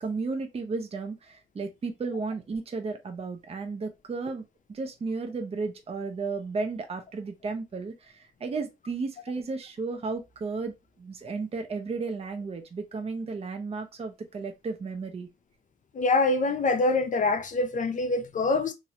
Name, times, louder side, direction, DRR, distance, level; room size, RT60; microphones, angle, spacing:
voice 1, 0.0-15.3, right 4 dB, 30° right, 0.7 m, -34 dB
voice 2, 15.9-18.7, left 3 dB, 40° left, 0.7 m, -25 dB
3.0 x 2.7 x 2.8 m
cardioid pair, 90°, 20 cm